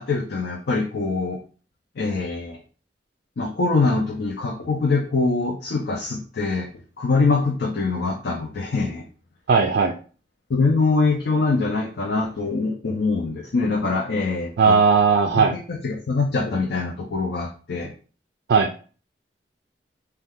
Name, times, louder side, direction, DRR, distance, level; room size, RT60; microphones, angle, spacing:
voice 1, 0.0-1.4 2.0-2.6 3.4-6.7 7.0-9.0 10.5-14.8 15.4-17.9, left 3 dB, 60° left, 0 dB, 0.5 m, -23 dB
voice 2, 9.5-9.9 14.6-15.5 18.5-18.7, right 5 dB, 60° right, 2 dB, 0.3 m, -17 dB
2.7 x 2.3 x 3.5 m, 0.38 s
head